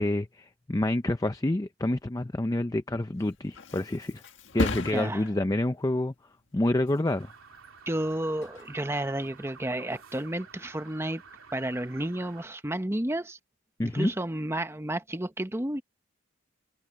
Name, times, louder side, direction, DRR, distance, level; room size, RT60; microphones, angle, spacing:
voice 1, 0.0-4.2 4.5-6.1 6.5-7.3 13.8-14.1, left 1 dB, 15° left, 0.5 m, -28 dB
Thump thud, 3.0-10.5 10.9-11.3, left 2 dB, 65° left, 1.8 m, -39 dB
voice 2, 4.9-5.2 7.9-11.2 11.5-13.4 13.8-15.8, right 1 dB, 15° right, 0.9 m, -31 dB
sound 1, 7.1-12.5, right 5 dB, 90° right, 2.8 m, -51 dB
head